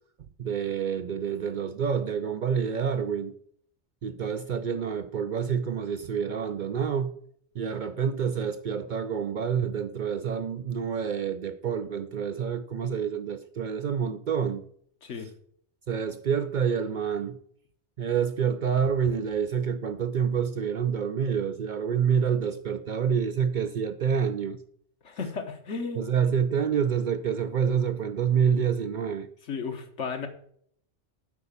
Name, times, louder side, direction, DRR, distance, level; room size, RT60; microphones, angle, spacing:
voice 1, 0.4-3.4 4.0-7.2 7.5-14.6 15.9-17.4 18.0-24.6 26.0-29.3, right 7 dB, 60° right, 0.5 m, -27 dB
voice 2, 25.0-26.1 29.5-30.3, left 5 dB, 85° left, 1.5 m, -34 dB
8.3 x 4.9 x 6.8 m
omnidirectional pair, 1.2 m